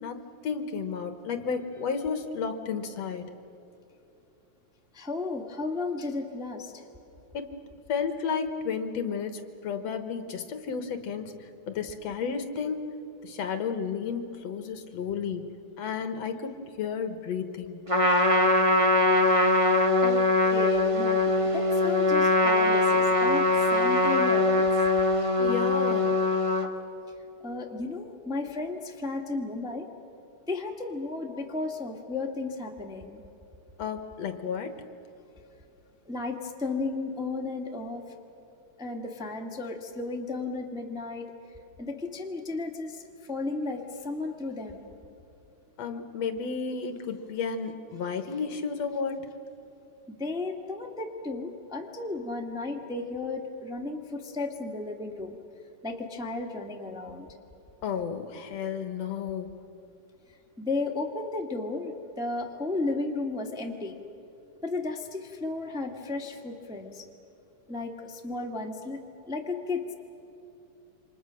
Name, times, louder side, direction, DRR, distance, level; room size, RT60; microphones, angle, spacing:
voice 1, 0.0-3.3 7.3-7.6 7.9-13.0 13.2-17.8 25.4-26.1 33.8-34.8 45.8-49.2 57.8-59.6, left 6 dB, 65° left, 8 dB, 2.3 m, -32 dB
voice 2, 4.9-6.8 20.0-24.8 27.4-29.9 30.5-33.2 36.0-38.0 38.8-43.0 43.3-44.8 50.1-55.4 55.8-57.3 60.6-64.0 64.6-67.1 67.7-69.0 69.3-69.9, left 3 dB, ahead, 1 dB, 1.3 m, -34 dB
Trumpet, 17.9-26.7, left 2 dB, 20° right, 0.8 m, -22 dB
28.5 x 25.5 x 6.4 m, 2.9 s
omnidirectional pair, 3.4 m